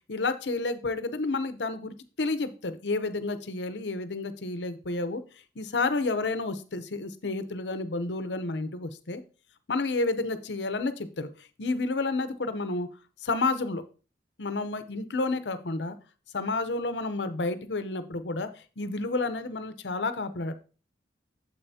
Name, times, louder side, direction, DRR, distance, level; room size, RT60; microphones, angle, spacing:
voice 1, 0.1-5.2 5.6-9.2 9.7-11.3 11.6-12.9 13.2-13.8 14.4-16.0 16.3-20.5, left 3 dB, 80° left, 11 dB, 0.8 m, -30 dB
9.0 x 7.5 x 2.8 m, 0.36 s
head